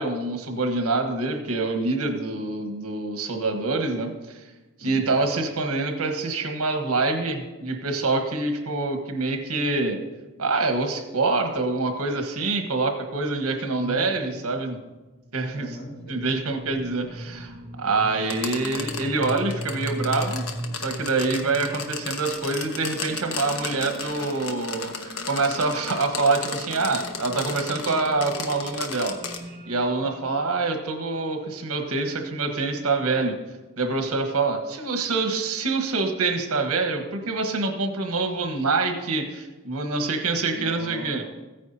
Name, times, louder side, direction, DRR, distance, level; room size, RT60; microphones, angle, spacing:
voice 1, 0.0-4.4 4.8-10.0 10.4-14.8 15.3-15.7 16.1-20.5 20.8-29.2 29.7-33.3 33.8-41.2, right 3 dB, 85° right, 5 dB, 1.4 m, -26 dB
voice 2, 13.7-14.4 15.5-16.2 18.5-18.9 40.5-41.3, equal, 45° left, -3 dB, 2.6 m, -39 dB
sound 1, 15.0-33.3, right 1 dB, 40° right, 1.7 m, -40 dB
sound 2, 18.2-29.4, left 5 dB, 80° left, 1.0 m, -35 dB
15.5 x 9.3 x 2.8 m, 1.2 s
head